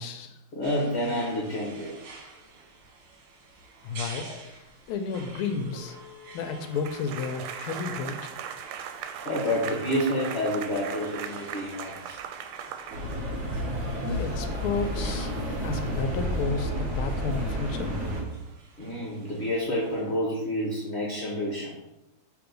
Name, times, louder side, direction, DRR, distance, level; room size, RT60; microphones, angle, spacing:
voice 1, 0.0-0.4 3.8-6.0 6.3-8.2 14.0-15.3 15.6-17.9, left 5 dB, 85° left, 7 dB, 1.5 m, -32 dB
voice 2, 0.5-2.0 4.2-4.4 9.2-12.2 18.8-21.8, left 1 dB, 45° left, -3 dB, 1.0 m, -29 dB
sound 1, 0.6-20.2, right 3 dB, 75° right, 2.0 m, -49 dB
sound 2, 6.7-13.5, right 8 dB, 90° right, 1.5 m, -38 dB
sound 3, 12.9-18.2, equal, 40° right, 1.4 m, -30 dB
6.1 x 3.1 x 5.1 m, 0.91 s
omnidirectional pair, 2.3 m